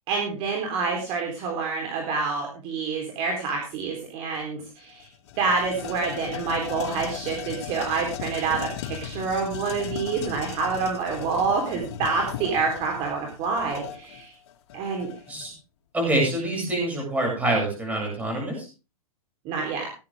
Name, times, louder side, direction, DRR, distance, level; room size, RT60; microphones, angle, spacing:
voice 1, 0.1-5.1 5.4-14.3 14.7-15.1 19.4-19.9, right 4 dB, 30° right, 1 dB, 4.0 m, -27 dB
sound 1, 4.3-4.4 4.8-15.5, left 9 dB, 50° left, 2.5 m, -37 dB
voice 2, 15.9-18.7, right 1 dB, 10° right, 0 dB, 7.6 m, -25 dB
17.5 x 11.5 x 3.7 m, 0.33 s
hypercardioid pair, 155°, 19 cm